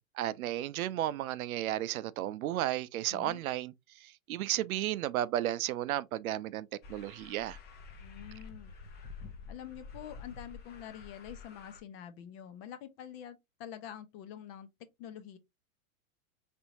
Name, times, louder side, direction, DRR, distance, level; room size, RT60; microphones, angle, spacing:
voice 1, 0.0-7.6, right 13 dB, 80° right, 0.6 m, -34 dB
sound 1, 6.8-11.8, left 5 dB, 25° left, 0.7 m, -49 dB
voice 2, 8.0-8.7 9.5-14.7 15.0-15.4, left 10 dB, 45° left, 1.0 m, -46 dB
4.5 x 3.4 x 2.6 m
hypercardioid pair, 130°, 42 cm